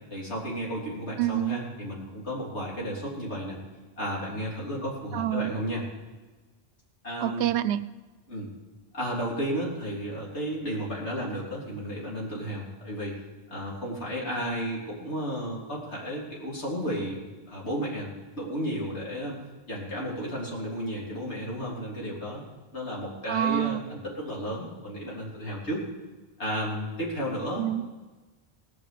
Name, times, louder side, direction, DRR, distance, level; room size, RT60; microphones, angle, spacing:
voice 1, 0.1-3.6 4.0-5.8 7.0-7.4 8.3-8.5 8.9-13.2 13.5-19.4 19.7-22.4 22.7-25.8 26.4-27.7, equal, 80° left, -5 dB, 3.7 m, -33 dB
voice 2, 1.2-1.6 5.1-5.5 7.2-7.8 23.3-23.9 27.6-27.8, right 12 dB, 75° right, 15 dB, 0.9 m, -27 dB
17.5 x 9.3 x 6.8 m, 1.2 s
omnidirectional pair, 1.1 m